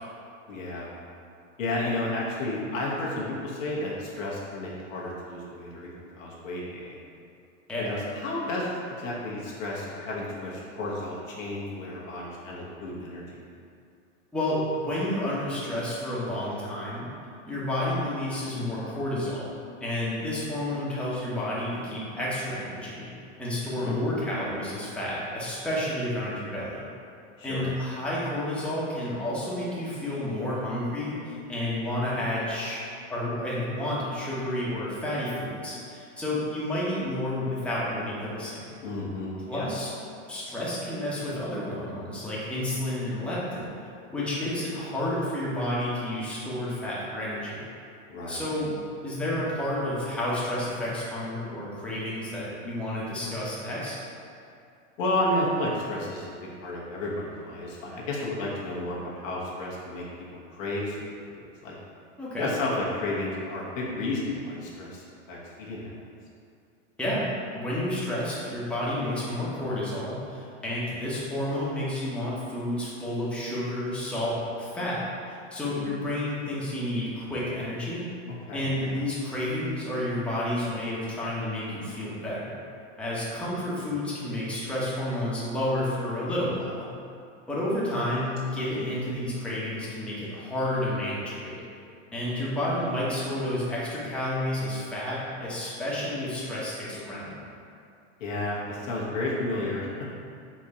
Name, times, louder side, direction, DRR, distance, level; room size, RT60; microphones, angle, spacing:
voice 1, 0.5-0.9 1.6-7.0 7.8-8.7 9.0-13.4 23.8-24.0 27.4-27.7 38.8-39.6 48.1-48.4 55.0-60.0 60.5-61.7 62.4-65.9 78.5-79.0 83.7-83.8 98.2-99.9, left 1 dB, 85° left, -5 dB, 1.2 m, -32 dB
voice 2, 14.3-17.1 17.5-19.5 19.8-23.1 23.4-26.8 27.4-32.8 33.1-38.7 39.5-39.9 40.3-43.7 44.1-47.6 48.3-48.8 49.0-54.0 62.2-62.5 67.0-67.3 67.5-78.1 78.5-82.6 83.0-86.9 87.5-91.6 92.1-97.3, left 1 dB, 5° left, -8 dB, 1.0 m, -30 dB
4.3 x 2.4 x 4.2 m, 2.5 s
hypercardioid pair, 115°, 38 cm